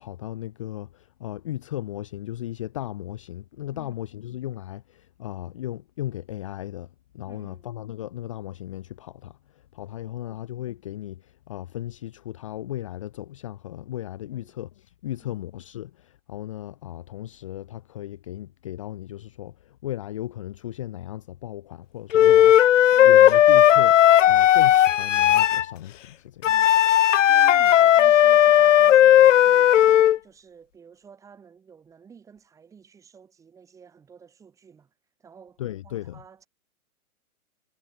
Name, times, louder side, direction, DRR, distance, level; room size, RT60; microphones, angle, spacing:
voice 1, 0.0-6.9 7.1-26.5 35.6-36.2, left 13 dB, 20° left, 0.8 m, -36 dB
voice 2, 7.3-7.7 10.0-10.4 14.3-14.6 15.2-15.5 22.9-23.3 26.4-26.9 27.3-34.9 35.2-36.5, right 6 dB, 5° right, 3.4 m, -51 dB
Wind instrument woodwind instrument, 22.1-25.6 26.4-30.2, left 11 dB, 60° left, 0.6 m, -16 dB
hypercardioid pair, 170°, 43 cm